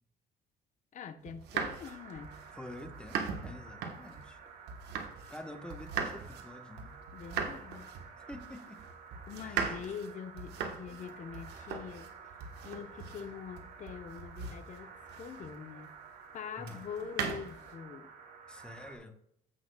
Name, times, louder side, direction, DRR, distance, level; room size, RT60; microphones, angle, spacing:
voice 1, 0.9-2.4 7.1-8.0 9.3-12.1 12.6-16.0 16.3-18.1, left 7 dB, 45° left, 1.0 m, -44 dB
sound 1, 1.3-5.4 5.7-15.6 16.6-17.8, right 6 dB, 80° right, 1.4 m, -40 dB
sound 2, 1.8-19.0, right 5 dB, 60° right, 2.1 m, -52 dB
voice 2, 2.5-4.4 5.3-7.0 8.2-8.8 9.4-9.8 10.9-11.1 16.6-16.8 18.5-19.2, left 1 dB, 5° left, 1.2 m, -48 dB
15.0 x 6.1 x 2.3 m
cardioid pair, 110°, 17 cm